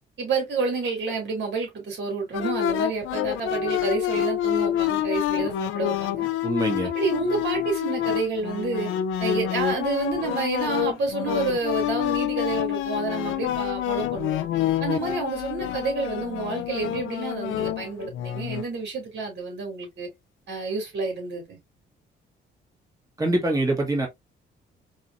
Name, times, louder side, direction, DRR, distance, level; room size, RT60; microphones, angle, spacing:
voice 1, 0.2-6.3 6.8-8.9 9.2-14.5 14.8-20.1 20.5-21.6, right 4 dB, 60° right, 2.8 m, -29 dB
sound 1, 2.3-18.7, left 11 dB, 85° left, 0.6 m, -27 dB
voice 2, 6.4-6.9 23.2-24.1, right 1 dB, 15° right, 1.6 m, -24 dB
4.8 x 3.0 x 2.6 m
cardioid pair, 90°, 20 cm